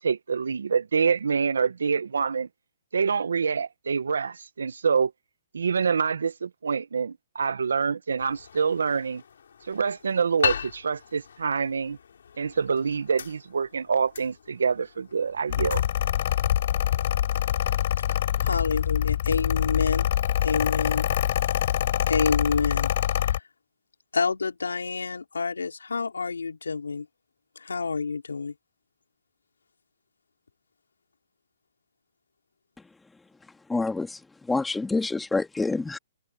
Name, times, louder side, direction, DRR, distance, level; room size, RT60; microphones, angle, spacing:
voice 1, 0.0-2.5 2.9-5.1 5.5-9.2 9.7-12.0 12.4-15.8, right 6 dB, 80° right, 1.3 m, -26 dB
sound 1, 8.2-18.3, left 7 dB, 75° left, 4.3 m, -39 dB
Mechanical fan, 15.5-23.4, left 11 dB, 55° left, 7.4 m, -25 dB
voice 2, 18.3-20.1 20.4-21.1 22.1-22.9 23.2-23.4 24.1-27.1 27.6-28.5, left 4 dB, 90° left, 4.8 m, -28 dB
voice 3, 33.7-34.1 34.5-36.0, left 3 dB, 5° left, 2.4 m, -26 dB
hypercardioid pair, 135°, 0 cm